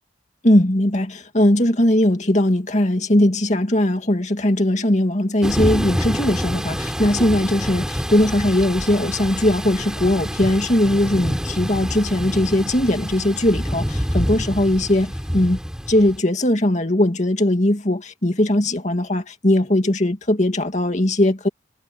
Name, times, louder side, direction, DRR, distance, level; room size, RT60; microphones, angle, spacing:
voice 1, 0.4-15.6 15.9-21.5, left 1 dB, 40° left, 2.3 m, -19 dB
Thunder / Rain, 5.4-16.2, equal, 5° right, 7.6 m, -27 dB
head